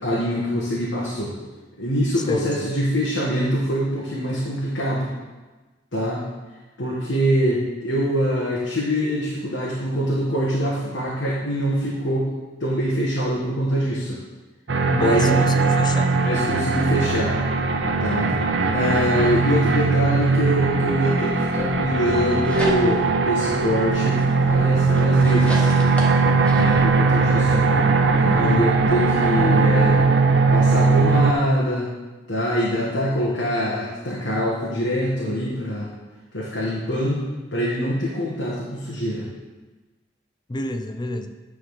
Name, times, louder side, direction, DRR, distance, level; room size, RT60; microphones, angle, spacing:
voice 1, 0.0-1.4 1.8-5.1 5.9-6.2 6.8-12.3 12.6-14.2 14.9-15.3 16.2-17.4 18.0-18.4 18.7-25.7 26.5-27.6 28.2-30.0 30.5-31.9 32.3-35.9 36.3-39.3, equal, 80° left, -5 dB, 1.5 m, -24 dB
voice 2, 2.3-2.7 14.9-16.2 28.4-28.7 40.5-41.3, left 2 dB, 25° left, 8 dB, 0.5 m, -29 dB
sound 1, 14.7-31.3, right 4 dB, 70° right, 0.7 m, -19 dB
sound 2, 22.1-23.2 23.6-26.9, right 1 dB, 5° left, 1.4 m, -35 dB
10.0 x 3.7 x 6.5 m, 1.2 s
head